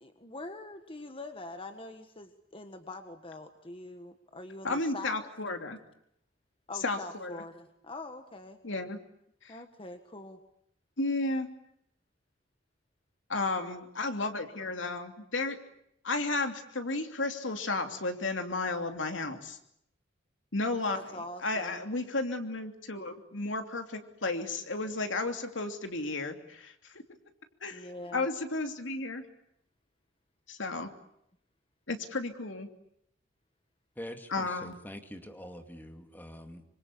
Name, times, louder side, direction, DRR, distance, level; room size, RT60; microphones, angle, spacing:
voice 1, 0.0-5.3 6.7-8.6 9.5-10.4 20.9-21.8 27.7-28.3, left 2 dB, 30° left, 7 dB, 1.6 m, -44 dB
voice 2, 4.6-5.8 6.8-7.4 8.6-9.0 9.4-9.6 11.0-11.5 13.3-15.6 16.0-19.6 20.5-27.0 27.6-29.3 30.5-30.9 31.9-32.7 34.3-34.8, left 2 dB, 80° left, 6 dB, 2.9 m, -33 dB
voice 3, 34.0-36.6, equal, 10° left, 6 dB, 2.3 m, -45 dB
26.5 x 25.5 x 8.5 m, 0.75 s
head